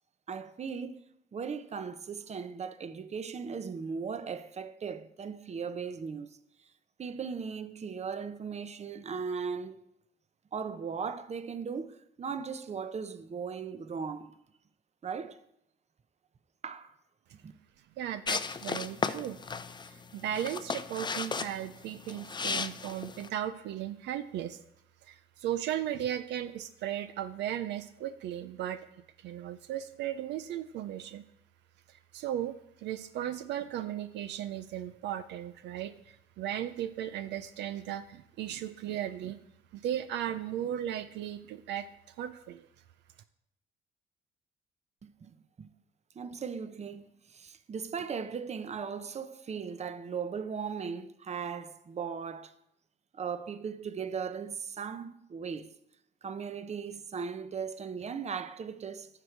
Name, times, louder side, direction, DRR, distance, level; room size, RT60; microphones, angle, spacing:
voice 1, 0.3-1.0 1.3-6.4 7.0-9.8 10.5-14.3 15.0-15.4 16.6-16.9 17.4-17.5 45.0-45.7 46.1-52.5 53.1-55.7 56.2-59.1, right 6 dB, 40° right, 0.8 m, -38 dB
voice 2, 18.0-19.4 19.8-24.6 25.0-28.8 29.2-31.2 31.9-39.4 39.7-42.7, right 11 dB, 75° right, 0.5 m, -36 dB
sound 1, 18.3-23.3, left 5 dB, 25° left, 0.5 m, -35 dB
11.0 x 6.5 x 4.6 m
supercardioid pair, 70°, 18 cm